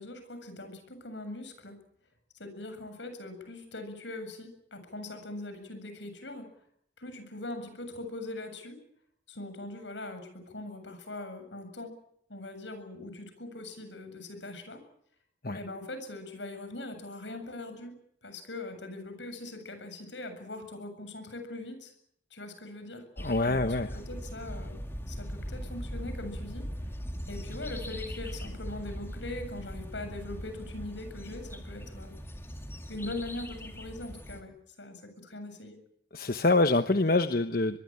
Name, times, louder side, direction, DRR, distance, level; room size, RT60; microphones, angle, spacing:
voice 1, 0.0-1.8 2.3-6.5 7.0-8.8 9.3-11.9 12.3-14.8 15.5-21.9 22.3-23.1 23.4-24.8 25.1-26.9 27.3-32.1 32.9-34.5 34.8-35.7, left 2 dB, 80° left, 8 dB, 7.6 m, -41 dB
voice 2, 23.2-23.9 36.1-37.8, left 2 dB, 50° left, 9 dB, 1.1 m, -25 dB
sound 1, 23.2-34.4, equal, 15° left, 2.9 m, -40 dB
24.5 x 22.0 x 8.8 m, 0.71 s
head